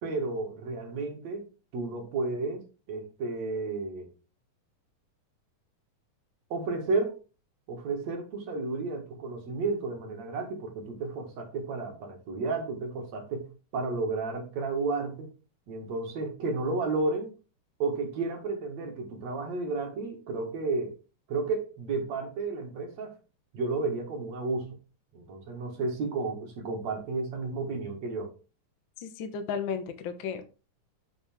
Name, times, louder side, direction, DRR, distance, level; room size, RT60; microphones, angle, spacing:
voice 1, 0.0-1.5 1.7-2.6 2.9-4.1 6.5-7.1 7.7-15.3 15.7-17.3 17.8-20.9 21.3-23.1 23.5-24.8 25.1-28.3, right 3 dB, 60° right, 3.0 m, -32 dB
voice 2, 29.0-30.4, left 6 dB, 90° left, 1.0 m, -34 dB
7.1 x 6.5 x 3.6 m
omnidirectional pair, 3.6 m